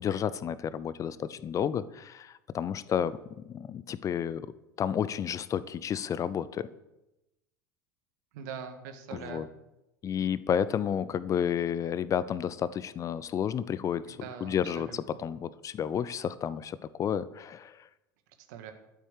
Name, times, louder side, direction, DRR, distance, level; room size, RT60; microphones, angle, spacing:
voice 1, 0.0-3.2 3.5-4.5 4.8-6.7 9.1-9.5 10.0-17.8, left 8 dB, 30° left, 17 dB, 0.6 m, -31 dB
voice 2, 8.3-9.5 14.1-15.0 18.5-18.7, right 7 dB, 60° right, 7 dB, 1.8 m, -42 dB
12.0 x 8.6 x 6.6 m, 0.93 s
figure-of-eight pair, 75°, 11 cm